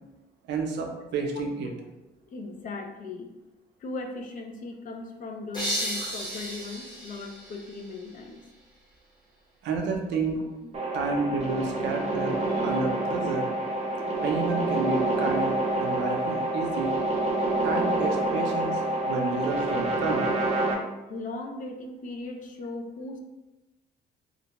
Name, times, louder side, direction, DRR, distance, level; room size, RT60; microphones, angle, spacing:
voice 1, 0.5-1.7 6.0-6.1 9.6-10.4 10.9-13.5 14.2-16.9 17.6-18.7 19.1-20.3, right 4 dB, 85° right, 2 dB, 0.5 m, -30 dB
voice 2, 2.3-3.3 3.8-8.4 21.1-23.2, left 3 dB, 50° left, 4 dB, 0.4 m, -38 dB
sound 1, 5.5-8.3, equal, 25° left, 0.9 m, -34 dB
sound 2, 10.7-20.7, right 2 dB, 35° right, 0.5 m, -27 dB
2.5 x 2.1 x 2.9 m, 1.0 s
cardioid pair, 110°, 18 cm